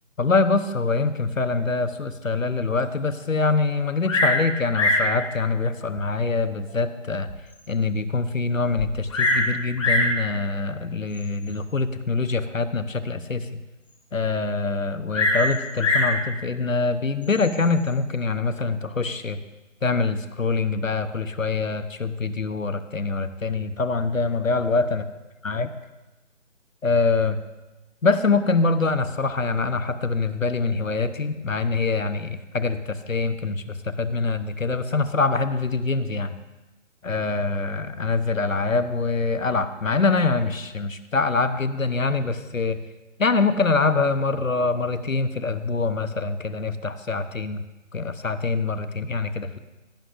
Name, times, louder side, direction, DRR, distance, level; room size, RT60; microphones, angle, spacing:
voice 1, 0.2-7.3 7.7-13.6 14.1-19.4 19.8-25.0 25.4-25.7 26.8-27.4 28.0-36.3 37.0-42.8 43.2-47.6 47.9-49.6, left 3 dB, 80° left, 12 dB, 0.9 m, -24 dB
Bird vocalization bird call bird song, 4.0-4.4 4.7-5.1 6.0-6.1 6.7-6.8 7.3-7.4 7.6-7.7 8.8-9.5 9.8-10.2 11.1-11.5 15.1-16.2 17.2-17.7, left 2 dB, 25° left, 1.5 m, -22 dB
17.0 x 9.1 x 2.5 m, 1.1 s
figure-of-eight pair, 150°, 39 cm